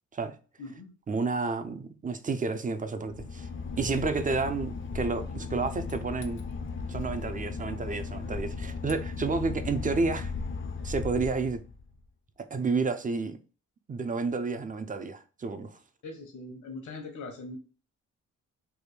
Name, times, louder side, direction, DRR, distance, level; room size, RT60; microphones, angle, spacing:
voice 1, 1.1-3.5 3.8-6.4 6.9-10.3 10.8-11.6 12.4-13.4 13.9-15.8, right 4 dB, 25° right, 0.4 m, -30 dB
Boat Water vehicle / Engine, 3.1-12.0, left 4 dB, 40° left, 0.5 m, -36 dB
voice 2, 16.0-17.6, left 3 dB, 70° left, 1.1 m, -41 dB
3.4 x 2.2 x 3.2 m
cardioid pair, 70°, 31 cm